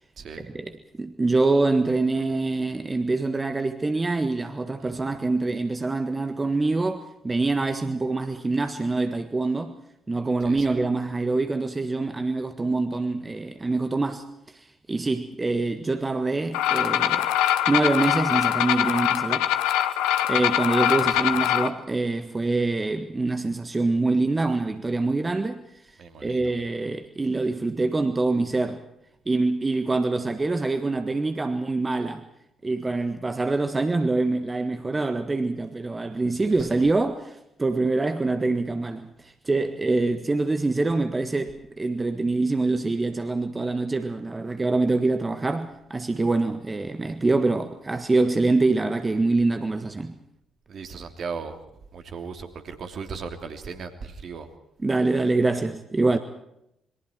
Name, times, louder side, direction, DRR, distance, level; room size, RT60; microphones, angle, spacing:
voice 1, 0.4-9.8 10.1-17.3 17.7-19.5 20.3-25.6 26.2-28.8 29.2-32.3 32.6-50.1 54.8-56.2, right 3 dB, 25° right, 1.6 m, -25 dB
voice 2, 10.4-10.7 21.0-21.3 26.0-26.5 36.4-36.6 50.7-51.6 51.9-54.5, right 5 dB, 55° right, 3.0 m, -37 dB
sound 1, 16.5-21.7, left 12 dB, 70° left, 1.1 m, -23 dB
28.0 x 22.5 x 4.6 m
hypercardioid pair, 45°, 0 cm